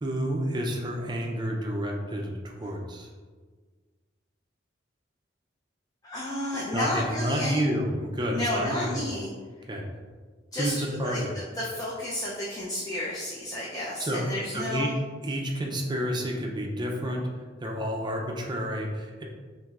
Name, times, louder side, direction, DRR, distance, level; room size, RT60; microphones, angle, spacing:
voice 1, 0.0-3.1 6.7-9.2 9.7-9.8 10.6-11.3 14.0-14.9 15.2-17.3 17.6-19.2, equal, 25° right, 0 dB, 0.5 m, -30 dB
voice 2, 6.0-7.6 8.3-9.3 10.5-14.9, left 1 dB, 20° left, -7 dB, 0.6 m, -32 dB
6.0 x 2.6 x 2.5 m, 1.5 s
head